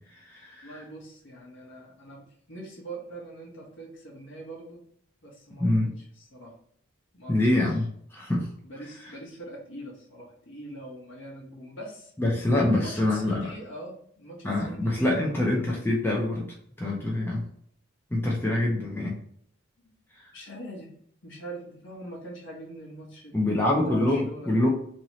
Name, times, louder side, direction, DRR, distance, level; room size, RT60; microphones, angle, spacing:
voice 1, 0.1-0.8 5.6-5.9 7.3-8.5 12.2-13.5 14.4-17.4 18.1-19.2 23.3-24.7, left 1 dB, 10° left, -3 dB, 0.4 m, -25 dB
voice 2, 0.6-4.8 5.2-5.7 6.0-6.5 7.1-7.4 8.6-12.1 12.7-15.3 19.8-19.9 20.3-20.9 21.2-24.7, right 1 dB, 60° left, -2 dB, 1.1 m, -42 dB
2.9 x 2.7 x 2.9 m, 0.66 s
head